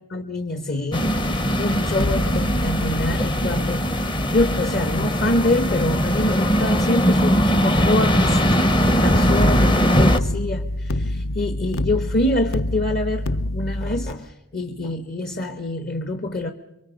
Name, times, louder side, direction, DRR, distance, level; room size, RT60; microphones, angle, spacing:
voice 1, 0.1-16.5, left 1 dB, 45° left, 7 dB, 1.1 m, -26 dB
sound 1, 0.9-10.2, equal, 20° left, 0.8 m, -20 dB
sound 2, 1.9-7.0 9.4-14.1, left 1 dB, 65° left, 0.7 m, -28 dB
29.0 x 23.5 x 5.2 m, 0.92 s
head